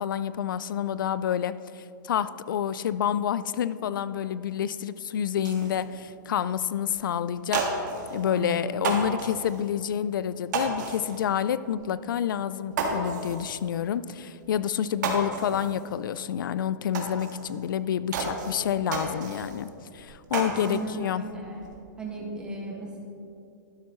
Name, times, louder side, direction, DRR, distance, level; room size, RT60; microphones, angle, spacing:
voice 1, 0.0-7.8 8.1-21.3, left 9 dB, 80° left, 15 dB, 0.4 m, -28 dB
sound 1, 5.4-5.8 6.5-6.6 6.9-7.0 7.3-8.3 8.8-9.7 10.5-11.3 11.7-11.8 12.2-12.3 12.7-13.7 14.4-14.5 14.8-15.9 16.2-16.3 16.9-17.6 18.1-19.7 20.0-20.8 21.2-21.8, right 4 dB, 60° right, 1.8 m, -32 dB
voice 2, 8.2-8.7 20.5-21.6 22.0-23.0, right 3 dB, 10° right, -3 dB, 1.7 m, -36 dB
12.0 x 10.0 x 3.1 m, 2.5 s
hypercardioid pair, 155°, 11 cm